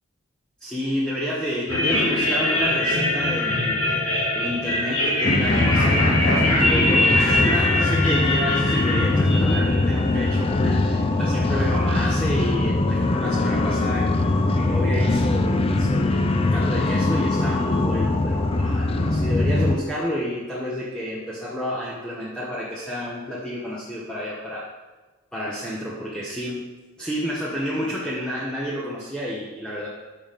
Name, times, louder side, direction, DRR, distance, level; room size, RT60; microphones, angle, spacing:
voice 1, 0.6-3.9 4.3-24.7 25.3-26.7 27.0-29.9, equal, 5° left, -7 dB, 0.8 m, -30 dB
sound 1, 1.7-11.1, left 1 dB, 90° left, 2.2 m, -23 dB
sound 2, 5.2-19.8, left 2 dB, 25° left, 0.4 m, -22 dB
6.9 x 5.7 x 5.1 m, 1.3 s
head